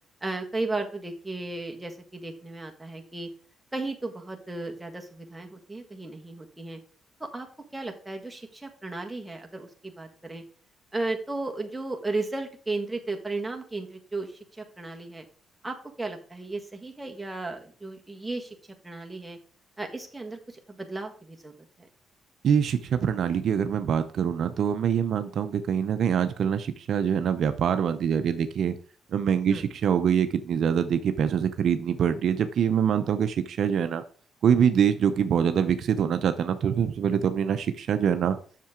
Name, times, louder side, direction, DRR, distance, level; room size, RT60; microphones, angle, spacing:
voice 1, 0.2-3.3 3.7-6.8 7.2-10.4 10.9-15.2 15.6-18.5 18.8-19.4 19.8-21.5 21.8-21.9 29.5-29.6, right 2 dB, 10° right, 2 dB, 1.6 m, -35 dB
voice 2, 22.4-28.8 29.1-34.0 34.4-38.4, right 8 dB, 65° right, 9 dB, 0.6 m, -24 dB
7.4 x 6.6 x 3.7 m, 0.43 s
cardioid pair, 90°, 0 cm